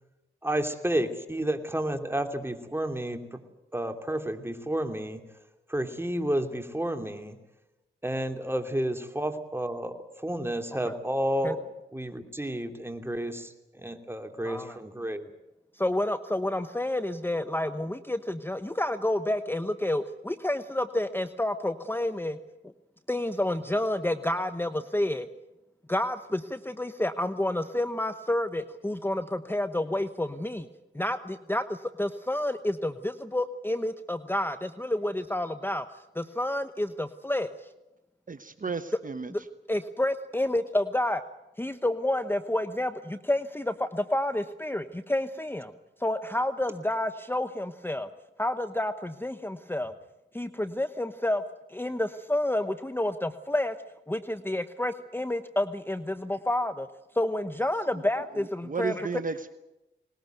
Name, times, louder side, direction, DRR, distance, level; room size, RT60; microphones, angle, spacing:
voice 1, 0.4-3.2 3.7-5.2 5.7-7.4 8.0-11.6 11.9-13.5 13.8-15.2, right 1 dB, 10° right, 6 dB, 2.9 m, -31 dB
voice 2, 14.4-14.8 15.8-22.4 23.1-25.3 25.9-30.7 30.9-35.9 36.1-37.5 39.3-39.4 39.7-41.2 41.6-45.7 46.0-48.1 48.4-49.9 50.3-51.4 51.7-53.8 54.1-56.9 57.1-59.1, left 1 dB, 10° left, 11 dB, 1.0 m, -29 dB
voice 3, 38.3-39.3 58.6-59.5, right 5 dB, 40° right, 11 dB, 1.1 m, -33 dB
20.0 x 20.0 x 9.2 m, 0.98 s
cardioid pair, 45°, 20 cm